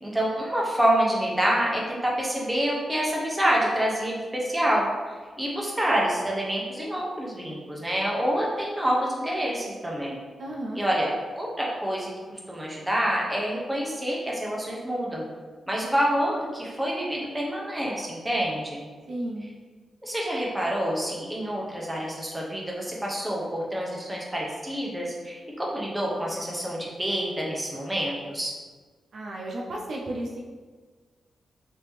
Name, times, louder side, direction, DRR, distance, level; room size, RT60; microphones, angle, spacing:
voice 1, 0.0-4.8 5.4-10.2 10.7-15.3 15.7-18.9 20.0-28.5, equal, 10° right, -4 dB, 0.8 m, -27 dB
voice 2, 10.4-10.8 19.1-19.5 29.1-30.4, right 1 dB, 65° right, -2 dB, 0.5 m, -33 dB
3.4 x 2.8 x 3.1 m, 1.4 s
cardioid pair, 100°, 0 cm